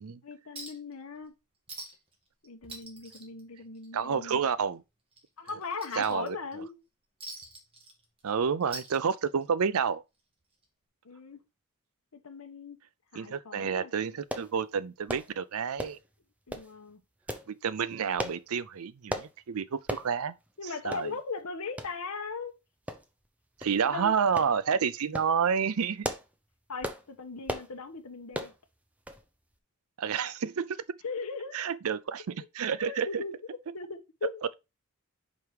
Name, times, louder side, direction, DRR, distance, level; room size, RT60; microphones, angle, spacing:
voice 1, 0.2-1.3 2.4-4.4 5.4-6.8 11.0-11.4 12.1-12.8 13.1-14.2 16.5-17.0 20.6-22.6 23.8-24.1 26.7-28.5 31.0-31.7 32.4-34.4, left 4 dB, 70° left, 0.9 m, -39 dB
Chink clink, 0.6-0.9 1.2-1.3 1.7-2.1 2.4-4.1 4.5-4.7 5.1-6.5 7.2-8.3 8.6-9.5 10.6-10.7, right 2 dB, 25° right, 1.8 m, -45 dB
voice 2, 3.9-4.8 6.0-6.4 8.2-10.0 13.1-16.0 17.5-20.4 20.8-21.1 23.6-26.1 30.0-30.8 31.5-33.2, right 6 dB, 70° right, 0.5 m, -29 dB
sound 1, 14.3-14.5 15.1-15.3 15.8-16.1 16.5-16.7 17.3-17.5 18.2-18.4 19.1-19.3 19.9-20.1 20.5-20.6 20.9-21.1 21.8-21.9 22.9-23.3 23.6-23.8 24.4-24.5 25.0-25.3 25.8-26.3 26.8-27.0 27.5-27.7 28.3-28.6 29.1-29.2 29.5-29.6, right 1 dB, 5° right, 0.6 m, -36 dB
5.3 x 4.6 x 4.7 m
head